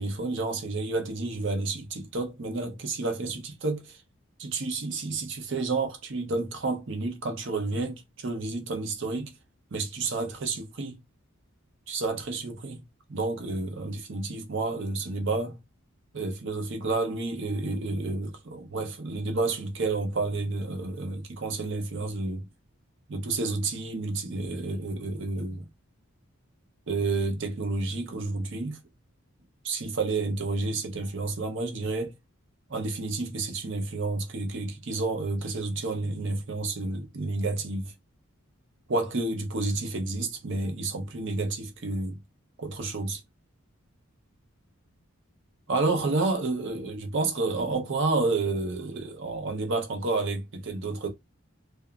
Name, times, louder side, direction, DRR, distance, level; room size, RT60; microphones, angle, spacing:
voice 1, 0.0-4.0 4.4-9.3 9.7-11.0 11.9-12.8 13.1-15.6 16.1-22.5 23.1-25.6 26.9-28.8 29.6-32.1 32.7-37.9 38.9-42.2 42.6-43.2 45.7-51.1, right 3 dB, 60° right, 0.6 m, -30 dB
2.9 x 2.2 x 2.3 m
head